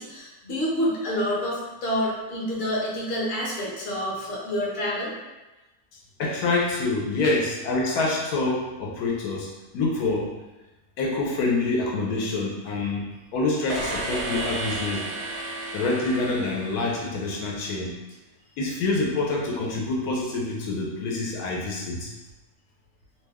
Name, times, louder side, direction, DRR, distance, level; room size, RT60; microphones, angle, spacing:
voice 1, 0.0-5.1 7.2-7.3, equal, 50° left, -5 dB, 0.9 m, -28 dB
voice 2, 6.2-10.3 11.0-15.1 15.7-17.9 18.6-22.1, left 3 dB, 80° left, -2 dB, 1.1 m, -26 dB
sound 1, 13.7-17.5, right 2 dB, 70° right, 0.6 m, -33 dB
2.7 x 2.2 x 3.4 m, 1.1 s
omnidirectional pair, 1.6 m